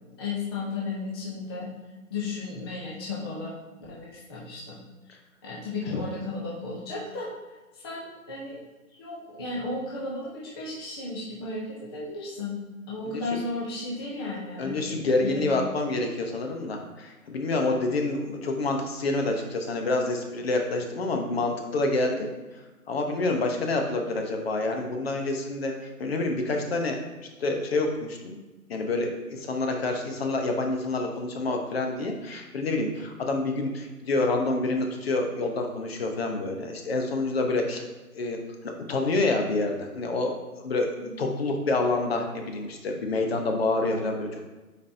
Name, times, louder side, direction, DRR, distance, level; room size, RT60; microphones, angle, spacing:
voice 1, 0.2-1.7 2.1-3.5 3.9-4.8 5.0-7.3 7.7-8.6 9.0-12.6 12.9-15.5 41.0-41.2, left 3 dB, 15° left, -5 dB, 0.6 m, -34 dB
voice 2, 14.6-22.3 22.9-27.0 27.4-28.4 28.7-37.8 38.1-38.4 38.6-44.4, left 2 dB, 45° left, 3 dB, 0.9 m, -27 dB
8.3 x 4.3 x 2.7 m, 1.2 s
hypercardioid pair, 150°, 44 cm